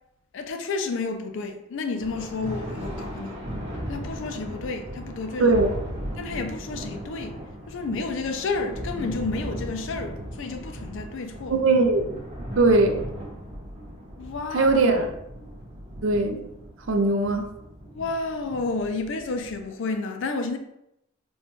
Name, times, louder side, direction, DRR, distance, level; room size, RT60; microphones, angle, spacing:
voice 1, 0.3-3.4 3.9-5.5 6.2-7.4 7.7-11.6 14.2-15.0 17.9-20.6, left 3 dB, 60° left, 0.4 m, -31 dB
Thunder, 2.0-19.7, equal, 30° right, 1.0 m, -37 dB
voice 2, 5.4-5.7 11.5-12.1 12.6-13.0 14.5-15.1 16.0-16.5 16.9-17.5, right 3 dB, 65° right, 0.5 m, -20 dB
4.1 x 2.3 x 3.0 m
head